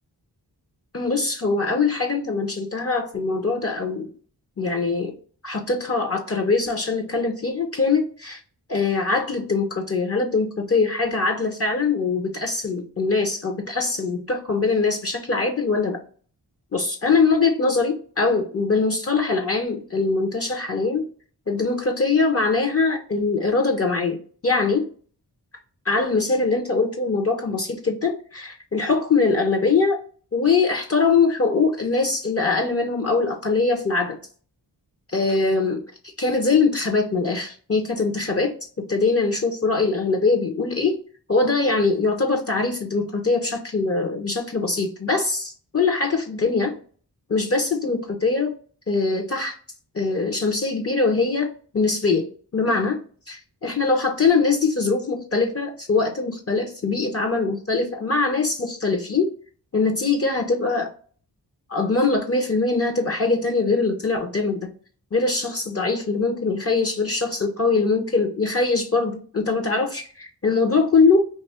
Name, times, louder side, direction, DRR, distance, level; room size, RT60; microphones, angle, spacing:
voice 1, 0.9-4.1 4.6-5.1 5.4-8.4 8.7-16.0 16.7-21.0 21.5-24.2 24.4-24.9 25.9-30.0 30.3-34.2 35.1-35.8 36.2-38.5 38.8-40.9 41.3-46.7 47.3-48.5 48.9-49.5 49.9-52.3 52.5-53.0 53.3-59.3 59.7-60.9 61.7-64.7 65.1-71.2, left 4 dB, 35° left, 3 dB, 0.7 m, -22 dB
2.7 x 2.4 x 4.1 m, 0.43 s
cardioid pair, 55°, 40 cm